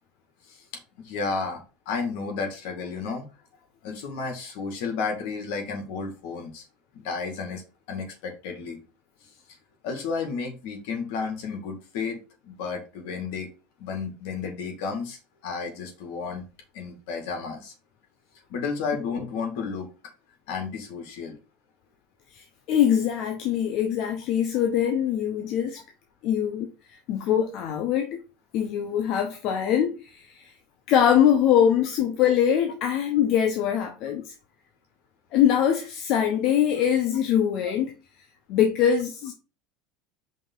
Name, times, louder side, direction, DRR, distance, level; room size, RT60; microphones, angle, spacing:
voice 1, 1.0-3.3 3.8-6.7 6.9-7.6 7.9-8.8 9.2-9.3 9.8-12.2 12.4-13.5 13.8-16.4 16.7-17.7 18.5-19.9 20.5-21.4, left 5 dB, 75° left, 2.2 m, -32 dB
voice 2, 22.3-25.8 26.2-26.7 27.1-28.2 28.5-30.5 30.9-34.3 35.3-37.9 38.5-39.3, left 9 dB, 55° left, 0.9 m, -23 dB
5.3 x 3.5 x 5.6 m
supercardioid pair, 130°, 0 cm